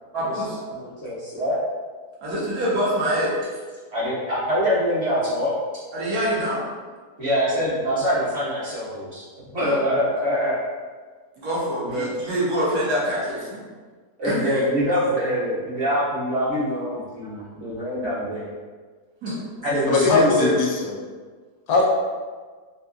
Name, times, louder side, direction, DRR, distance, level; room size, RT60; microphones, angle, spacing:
voice 1, 0.1-0.6 2.2-3.3 5.9-6.6 9.6-9.8 11.4-13.6 14.2-14.6 19.2-19.4, equal, 70° right, -7 dB, 1.4 m, -25 dB
voice 2, 0.7-1.6 3.9-5.5 7.2-9.2 9.5-10.6 11.8-12.1 14.2-18.5 19.6-20.6, equal, 45° right, -11 dB, 1.5 m, -24 dB
voice 3, 19.9-21.0 21.7-21.9, left 3 dB, 75° left, -1 dB, 1.0 m, -20 dB
3.5 x 2.8 x 2.4 m, 1.4 s
omnidirectional pair, 1.6 m